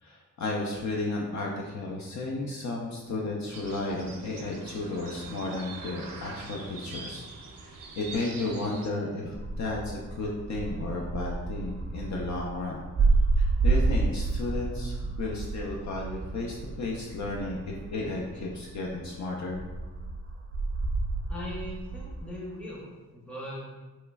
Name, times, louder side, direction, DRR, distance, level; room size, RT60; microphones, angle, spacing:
voice 1, 0.0-7.2 7.6-12.9 13.4-19.6, left 2 dB, 60° left, -2 dB, 0.5 m, -33 dB
sound 1, 3.5-8.9, right 4 dB, 85° right, 0.5 m, -44 dB
sound 2, 9.3-19.0 19.5-22.4, right 3 dB, 40° right, 0.4 m, -30 dB
voice 2, 21.3-23.7, left 1 dB, 5° left, -4 dB, 0.6 m, -39 dB
3.2 x 3.0 x 2.3 m, 1.2 s
wide cardioid pair, 105°, 33 cm